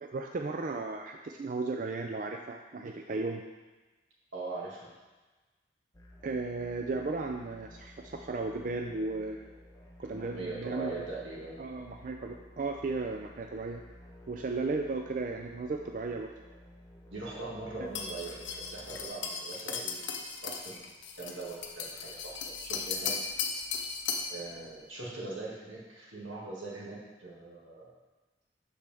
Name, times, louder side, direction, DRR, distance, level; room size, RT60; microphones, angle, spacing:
voice 1, 0.0-3.4 6.2-9.5 10.0-11.1 11.6-13.8 14.3-16.3 17.8-17.9, right 3 dB, 45° right, 3 dB, 0.3 m, -35 dB
voice 2, 4.3-4.9 10.0-11.6 17.1-20.9 21.2-23.2 24.3-27.9, right 3 dB, 85° right, -5 dB, 2.1 m, -41 dB
sound 1, 5.9-19.1, equal, 15° left, 0.7 m, -53 dB
sound 2, 18.0-24.4, left 5 dB, 70° left, 0.8 m, -36 dB
11.0 x 4.3 x 3.5 m, 1.2 s
head